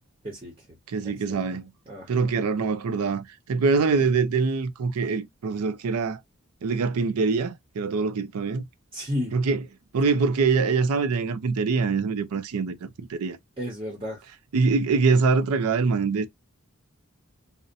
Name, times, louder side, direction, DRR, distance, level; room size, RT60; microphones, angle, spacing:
voice 1, 0.2-0.5 1.0-1.4 1.9-2.3 8.9-9.3 13.6-14.2, left 1 dB, 25° right, 0.8 m, -33 dB
voice 2, 0.9-1.7 2.1-6.2 6.6-8.6 9.3-9.6 9.9-13.4 14.5-16.3, right 4 dB, 90° right, 0.5 m, -24 dB
2.7 x 2.0 x 2.4 m
head